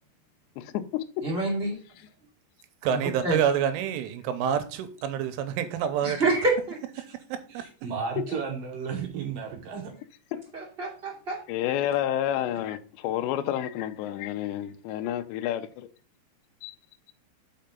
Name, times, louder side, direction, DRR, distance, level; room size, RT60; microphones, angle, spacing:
voice 1, 0.6-1.2 8.2-8.3 10.3-10.4 11.5-15.9 16.6-16.7, left 11 dB, 80° left, 2.7 m, -30 dB
voice 2, 1.2-1.8 2.9-3.4 6.0-6.8 10.5-11.4, right 2 dB, 25° right, 1.4 m, -27 dB
voice 3, 2.8-6.2, right 9 dB, 90° right, 3.3 m, -27 dB
voice 4, 7.5-9.9, right 6 dB, 70° right, 2.2 m, -33 dB
5.8 x 5.7 x 5.2 m
omnidirectional pair, 5.6 m